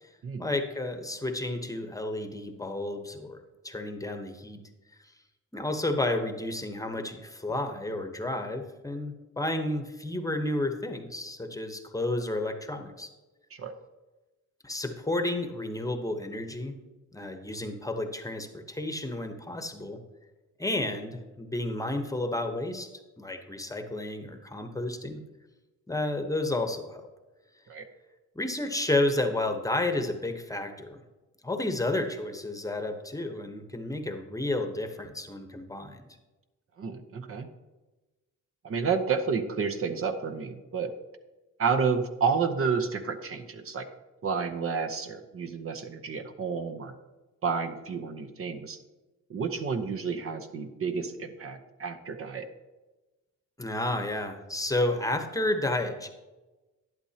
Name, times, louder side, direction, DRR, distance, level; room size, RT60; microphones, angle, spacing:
voice 1, 0.4-4.6 5.5-13.1 14.6-16.7 17.1-20.0 20.6-22.9 23.2-25.2 25.9-27.0 28.3-31.0 31.4-36.0 53.6-56.1, left 2 dB, 10° left, 6 dB, 1.0 m, -31 dB
voice 2, 36.8-37.5 38.6-40.9 41.6-43.9 44.2-46.9 47.4-48.8 49.3-52.5, right 5 dB, 45° right, 7 dB, 0.9 m, -30 dB
11.5 x 10.5 x 2.8 m, 1.2 s
cardioid pair, 90°, 30 cm